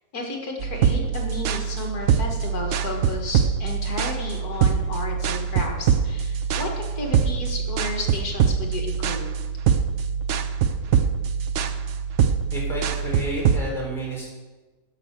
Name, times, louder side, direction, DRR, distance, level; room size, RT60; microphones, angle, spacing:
voice 1, 0.1-6.7 7.0-9.2, left 2 dB, 60° left, 1 dB, 2.2 m, -32 dB
sound 1, 0.6-13.6, right 7 dB, 65° right, 0.7 m, -24 dB
voice 2, 12.5-14.3, right 1 dB, ahead, -5 dB, 3.9 m, -30 dB
12.0 x 5.5 x 6.7 m, 1.2 s
omnidirectional pair, 1.8 m